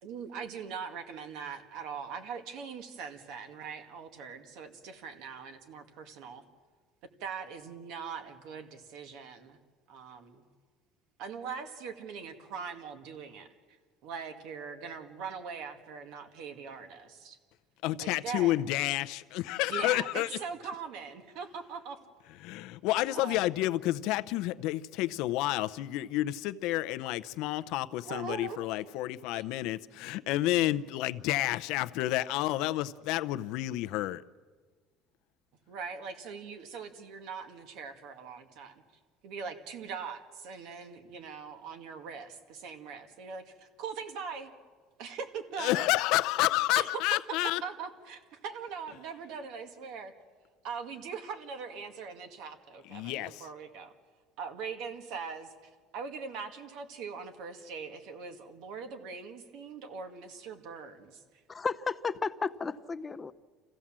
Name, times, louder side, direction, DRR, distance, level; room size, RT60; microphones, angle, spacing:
voice 1, 0.0-6.4 7.2-9.6 9.9-10.4 11.2-13.5 14.0-17.4 18.0-18.6 19.7-22.0 23.1-23.4 28.0-28.7 29.3-29.4 35.7-38.8 39.2-44.5 45.0-45.9 46.7-47.0 47.6-50.1 50.6-53.9 54.4-61.2, right 6 dB, 70° right, 2.1 m, -41 dB
voice 2, 17.8-20.3 22.4-34.2 45.6-47.6 52.9-53.4, left 16 dB, 70° left, 0.7 m, -30 dB
voice 3, 61.5-63.3, left 4 dB, 20° left, 0.6 m, -33 dB
28.0 x 15.5 x 7.5 m
cardioid pair, 145°, 0 cm